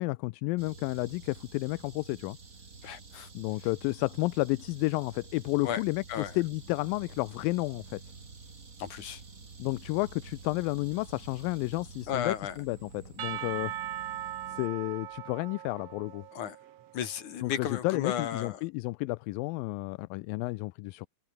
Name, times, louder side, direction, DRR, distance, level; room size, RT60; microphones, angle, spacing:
voice 1, 0.0-2.4 3.3-8.0 9.6-13.7 14.5-16.3 17.4-21.1, left 23 dB, 85° left, 2.3 m, -31 dB
sound 1, 0.6-14.7, right 4 dB, 25° right, 2.5 m, -49 dB
voice 2, 2.8-3.3 5.6-5.8 6.1-6.3 8.8-9.2 12.1-12.6 16.3-16.6 16.9-18.6, left 9 dB, 60° left, 3.6 m, -34 dB
Percussion / Church bell, 13.2-17.2, right 12 dB, 65° right, 1.7 m, -39 dB
omnidirectional pair, 4.0 m